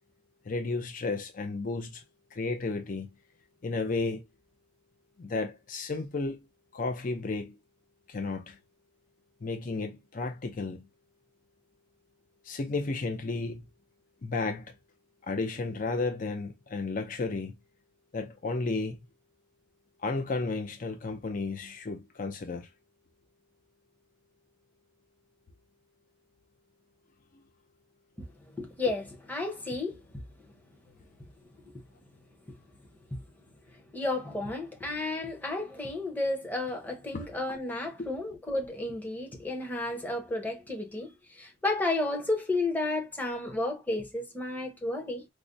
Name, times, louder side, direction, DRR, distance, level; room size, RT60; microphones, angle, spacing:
voice 1, 0.5-2.0 2.3-3.1 3.6-4.2 5.2-6.5 6.7-7.6 8.1-8.6 9.4-10.8 12.4-13.6 14.2-14.7 15.2-17.5 18.1-19.0 20.0-22.7 37.1-37.3, left 3 dB, 40° left, 0.5 m, -33 dB
voice 2, 28.6-30.0 33.9-45.2, left 2 dB, 10° left, 0.8 m, -32 dB
4.8 x 2.1 x 2.6 m
head